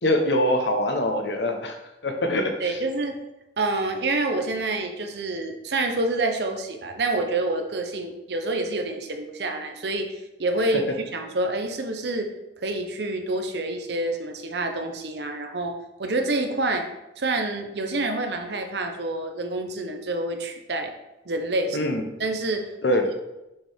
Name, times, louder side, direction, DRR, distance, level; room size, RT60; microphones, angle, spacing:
voice 1, 0.0-2.8 21.7-22.0 22.8-23.1, left 1 dB, 75° left, 4 dB, 1.0 m, -24 dB
voice 2, 2.6-3.2 3.6-10.1 10.4-10.8 11.1-12.3 12.6-16.9 17.2-20.9 21.3-21.9 22.2-22.7, right 2 dB, 70° right, 4 dB, 0.8 m, -27 dB
6.6 x 4.5 x 3.5 m, 0.94 s
head